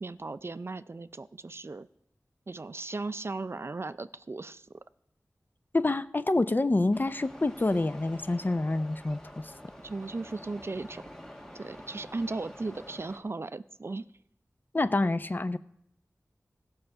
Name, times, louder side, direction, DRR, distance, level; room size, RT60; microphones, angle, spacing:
voice 1, 0.0-1.9 2.5-4.7 9.8-11.0 11.5-14.1, right 3 dB, 45° right, 14 dB, 0.4 m, -37 dB
voice 2, 5.7-9.5 14.7-15.6, left 2 dB, 35° left, 13 dB, 0.4 m, -27 dB
sound 1, 6.9-13.2, equal, 10° left, 1.6 m, -48 dB
16.5 x 5.6 x 6.6 m, 0.78 s
wide cardioid pair, 60°, 6 cm